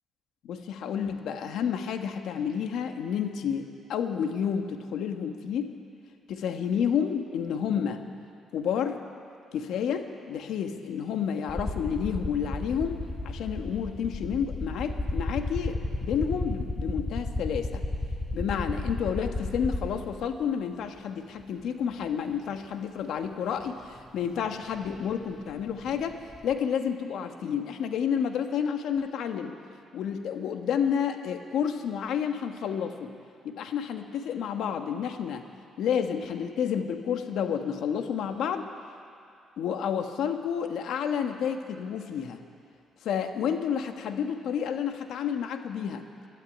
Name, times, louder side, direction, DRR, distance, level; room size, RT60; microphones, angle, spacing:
voice 1, 0.4-5.7 6.3-8.1 8.5-9.0 9.5-17.8 18.3-29.6 29.9-33.1 33.4-35.5 35.8-38.7 39.6-42.4 43.0-46.0, left 7 dB, 80° left, 6 dB, 1.5 m, -30 dB
sound 1, 11.5-20.2 21.4-21.5 23.6-23.7 24.0-26.5, left 2 dB, 15° left, 3.8 m, -33 dB
23.0 x 12.5 x 9.4 m, 2.4 s
cardioid pair, 90°, 0 cm